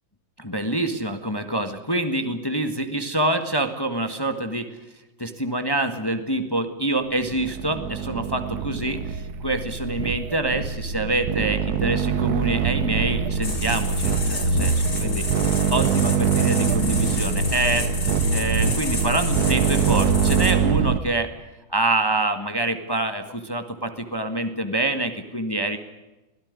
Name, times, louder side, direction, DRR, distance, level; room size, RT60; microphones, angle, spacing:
voice 1, 0.4-4.8 5.2-15.2 15.7-17.9 18.3-21.3 21.7-25.8, right 1 dB, 15° left, 7 dB, 1.4 m, -26 dB
sound 1, 7.1-21.0, right 7 dB, 55° right, 1.3 m, -24 dB
sound 2, 13.4-20.5, left 1 dB, 65° left, 4.4 m, -27 dB
24.5 x 16.5 x 9.6 m, 1.1 s
omnidirectional pair, 2.2 m